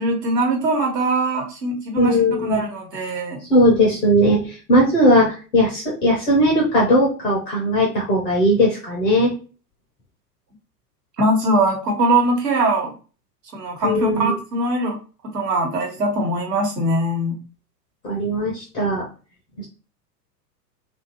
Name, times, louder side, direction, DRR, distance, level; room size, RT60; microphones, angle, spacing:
voice 1, 0.0-2.2 2.4-3.4 11.2-12.9 13.5-15.0 15.2-17.4, right 1 dB, 75° right, 1 dB, 1.3 m, -21 dB
voice 2, 2.0-2.6 3.5-9.3 13.8-14.3 18.0-19.0, equal, 10° left, -3 dB, 0.3 m, -18 dB
2.7 x 2.5 x 2.9 m, 0.35 s
figure-of-eight pair, 100°, 49 cm